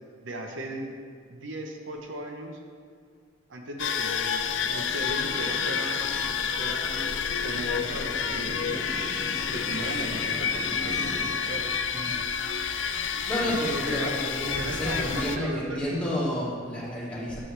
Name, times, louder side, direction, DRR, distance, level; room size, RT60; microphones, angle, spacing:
voice 1, 0.2-1.0 1.3-2.6 3.5-6.2 6.6-8.9 9.5-11.7 13.5-16.1, right 1 dB, 75° right, 2 dB, 0.8 m, -37 dB
sound 1, 3.8-15.4, left 6 dB, 70° left, 0.5 m, -29 dB
sound 2, 4.4-11.3, equal, 20° left, 1.6 m, -40 dB
voice 2, 13.3-17.4, equal, 5° left, -9 dB, 2.3 m, -30 dB
9.5 x 7.7 x 3.3 m, 2.1 s
head